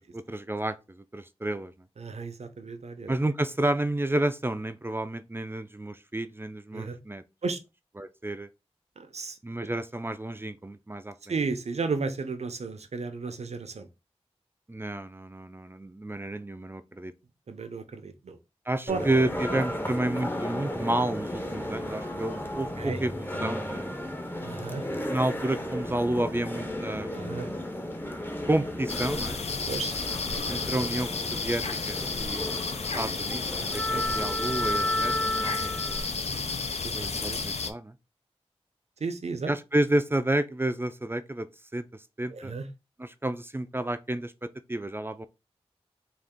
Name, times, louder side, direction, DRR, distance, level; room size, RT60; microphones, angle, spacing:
voice 1, 0.1-0.8 1.1-1.7 3.1-7.2 8.0-8.5 9.4-11.1 14.7-17.1 18.7-23.9 25.1-27.4 28.5-29.4 30.5-33.4 33.7-35.1 35.4-36.1 36.9-37.9 39.5-41.5 41.7-42.5 43.0-45.3, right 1 dB, 20° right, 0.4 m, -30 dB
voice 2, 2.0-3.1 6.7-7.0 7.4-7.6 9.0-9.4 11.3-13.9 17.5-18.4 18.9-19.1 22.8-23.0 24.4-24.8 27.1-27.5 29.7-30.0 30.3-30.6 32.9-33.1 33.6-34.2 34.9-35.1 36.8-37.4 39.0-39.5 42.3-42.7, right 4 dB, 80° right, 0.6 m, -34 dB
sound 1, 18.9-36.0, left 1 dB, 20° left, 0.7 m, -33 dB
sound 2, 28.9-37.7, left 4 dB, 75° left, 0.5 m, -32 dB
3.8 x 2.4 x 3.6 m
wide cardioid pair, 55°, 11 cm